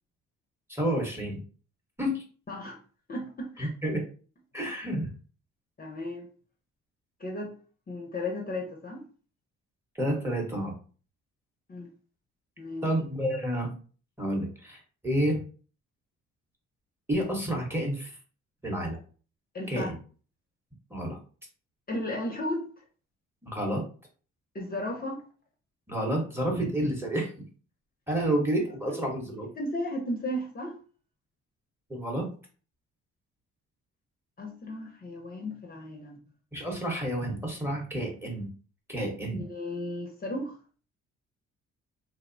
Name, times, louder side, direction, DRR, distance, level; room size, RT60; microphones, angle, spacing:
voice 1, 0.7-1.4 2.0-2.2 3.6-4.0 4.5-5.1 10.0-10.7 12.8-13.7 14.2-15.4 17.1-18.2 18.6-19.0 19.7-20.0 20.9-21.2 23.4-23.8 25.9-27.3 28.1-29.5 31.9-32.3 36.5-38.5 38.9-39.4, right 1 dB, 10° right, 0.8 m, -29 dB
voice 2, 2.5-2.8 3.1-3.7 5.8-6.3 7.2-7.6 7.9-9.0 11.7-11.9 12.6-12.9 19.5-19.9 21.9-22.7 24.5-25.2 28.9-29.0 29.6-30.8 34.4-36.2 39.3-40.6, left 1 dB, 30° left, 0.6 m, -34 dB
2.8 x 2.0 x 2.5 m
cardioid pair, 90°, 30 cm